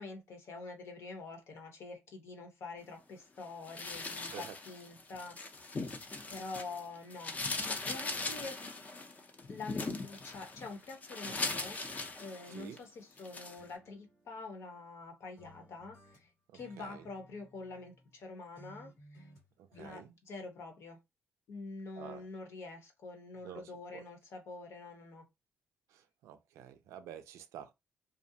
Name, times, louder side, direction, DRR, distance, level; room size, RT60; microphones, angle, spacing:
voice 1, 0.0-5.4 6.3-8.7 9.5-11.8 12.2-19.3 19.7-21.0 21.5-25.2, left 3 dB, 65° left, 0.9 m, -46 dB
sound 1, 3.6-6.8 7.1-12.8 13.2-13.6, left 3 dB, 30° left, 0.6 m, -40 dB
sound 2, 13.6-15.0 15.4-18.2 18.5-20.0, equal, 85° left, 1.5 m, -59 dB
voice 2, 19.8-20.1 22.0-22.2 23.4-23.6 23.9-24.0 25.9-27.7, right 10 dB, 85° right, 0.4 m, -49 dB
2.5 x 2.0 x 2.7 m
cardioid pair, 90°, 5 cm